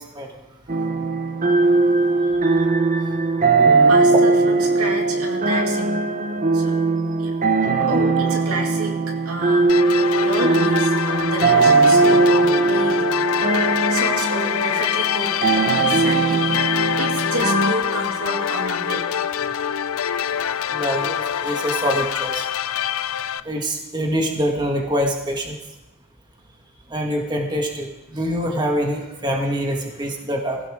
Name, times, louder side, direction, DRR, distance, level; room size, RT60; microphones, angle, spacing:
sound 1, 0.7-17.7, right 3 dB, 35° right, 0.9 m, -19 dB
voice 1, 3.9-6.1 6.5-6.8 7.2-7.3 7.6-9.0 9.2-13.1 13.9-19.1, right 2 dB, 80° right, 1 dB, 2.7 m, -30 dB
sound 2, 9.7-23.4, left 9 dB, 70° left, 0.5 m, -24 dB
voice 2, 20.7-22.5 23.4-25.6 26.9-30.6, equal, 20° right, 1 dB, 1.8 m, -25 dB
22.5 x 15.5 x 3.7 m, 0.99 s
head